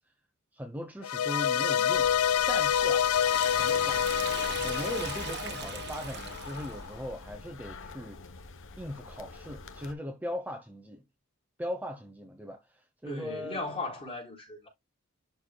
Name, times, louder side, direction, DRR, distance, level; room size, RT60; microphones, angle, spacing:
voice 1, 0.5-2.1 2.5-3.1 3.6-4.2 4.6-8.2 8.8-11.1 11.6-13.6, equal, 10° right, 0.9 m, -39 dB
sound 1, 1.0-6.3, left 9 dB, 80° left, 0.3 m, -27 dB
sound 2, 1.9-9.9, left 3 dB, 65° left, 1.1 m, -45 dB
Liquid, 2.3-6.9, right 7 dB, 55° right, 1.0 m, -41 dB
voice 2, 13.1-14.7, left 2 dB, 25° left, 4.2 m, -37 dB
11.5 x 4.6 x 2.3 m
head